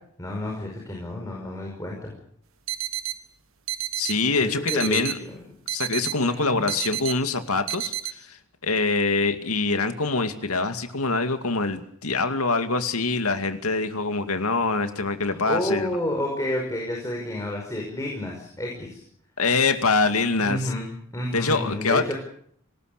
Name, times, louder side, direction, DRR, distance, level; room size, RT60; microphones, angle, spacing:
voice 1, 0.2-2.1 4.4-5.4 6.2-6.7 15.3-19.0 20.4-22.1, left 1 dB, 15° left, -1 dB, 5.3 m, -30 dB
sound 1, 2.7-3.2 3.7-4.2 4.7-5.2 5.7-6.2 6.7-7.2 7.7-8.1, right 13 dB, 65° right, 1.5 m, -30 dB
voice 2, 4.0-5.2 5.7-7.9 8.3-8.4 8.6-15.9 19.4-20.6 21.3-22.1, left 3 dB, 85° left, 7 dB, 2.3 m, -24 dB
25.5 x 19.0 x 6.7 m, 0.66 s
head